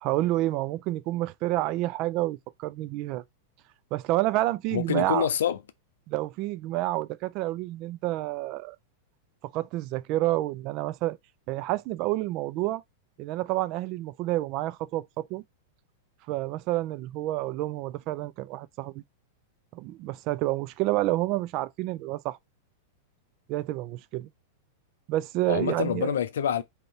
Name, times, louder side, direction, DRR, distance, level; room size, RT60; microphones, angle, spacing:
voice 1, 0.0-3.2 3.9-5.3 6.1-8.8 9.5-11.2 11.5-12.8 13.2-15.4 16.3-19.0 19.7-22.4 23.5-24.3 25.1-26.1, right 16 dB, 40° right, 0.3 m, -29 dB
voice 2, 4.7-5.6 25.5-26.6, left 9 dB, 65° left, 0.5 m, -26 dB
3.8 x 2.8 x 4.5 m
figure-of-eight pair, 95°, 0 cm